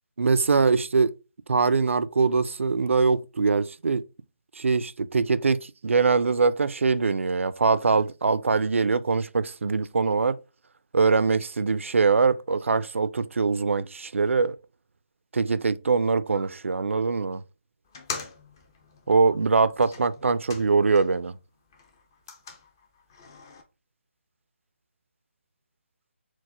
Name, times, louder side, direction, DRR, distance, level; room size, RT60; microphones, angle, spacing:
voice 1, 0.2-1.2 1.5-4.1 4.6-10.4 10.9-14.6 15.3-17.4 19.1-21.4, right 4 dB, 80° right, 0.4 m, -23 dB
sound 1, 17.8-21.3 21.6-23.6, left 5 dB, 20° left, 0.4 m, -42 dB
4.6 x 2.1 x 4.2 m
hypercardioid pair, 165°, 7 cm